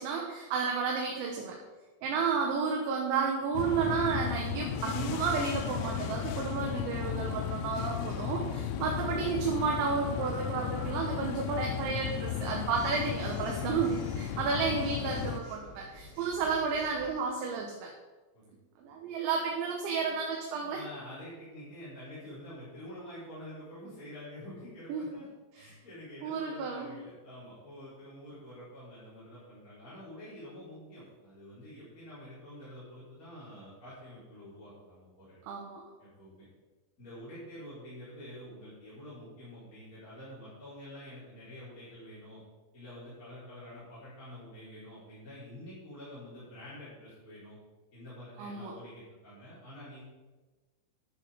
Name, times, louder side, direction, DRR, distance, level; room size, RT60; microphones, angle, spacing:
voice 1, 0.0-1.6 2.0-17.9 18.8-20.8 24.9-25.1 26.2-27.0 35.4-35.8 48.4-48.7, right 5 dB, 75° right, 0 dB, 3.3 m, -32 dB
sound 1, 3.5-15.4, left 9 dB, 90° left, 3.2 m, -35 dB
Telephone, 9.6-11.0 12.7-17.1, equal, 25° right, 1.2 m, -51 dB
voice 2, 20.7-25.3 25.5-35.4 36.0-36.5 37.0-42.4 42.7-47.6 47.9-50.0, left 1 dB, 20° left, -11 dB, 3.9 m, -48 dB
11.0 x 7.3 x 5.1 m, 1.2 s
omnidirectional pair, 5.6 m